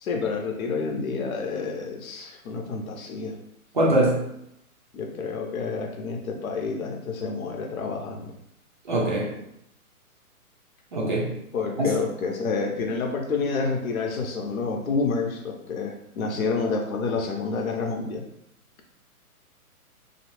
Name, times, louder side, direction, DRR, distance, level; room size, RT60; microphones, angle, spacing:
voice 1, 0.0-3.3 4.9-8.3 11.5-18.2, left 4 dB, 65° left, 2 dB, 0.7 m, -29 dB
voice 2, 3.7-4.3 8.9-9.3 10.9-11.3 11.8-11.9, right 1 dB, 35° right, -4 dB, 0.5 m, -22 dB
2.6 x 2.0 x 3.0 m, 0.78 s
hypercardioid pair, 145°, 45 cm